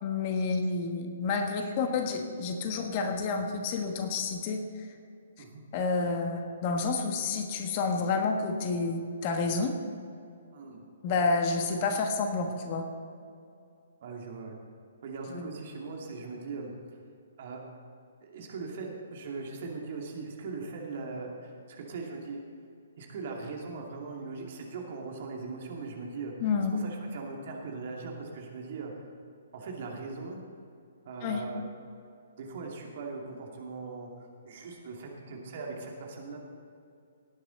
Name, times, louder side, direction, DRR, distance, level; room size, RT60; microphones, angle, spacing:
voice 1, 0.0-4.6 5.7-9.8 11.0-12.8 15.3-15.5 26.4-26.8 31.2-31.4, left 4 dB, 35° left, 4 dB, 1.3 m, -29 dB
voice 2, 14.0-14.5 15.0-17.0 17.4-17.6 18.2-22.4 23.0-28.9 29.5-30.4 31.0-31.6 32.4-36.4, right 4 dB, 45° right, 0 dB, 2.5 m, -40 dB
18.5 x 9.6 x 4.1 m, 2.5 s
figure-of-eight pair, 125°, 0 cm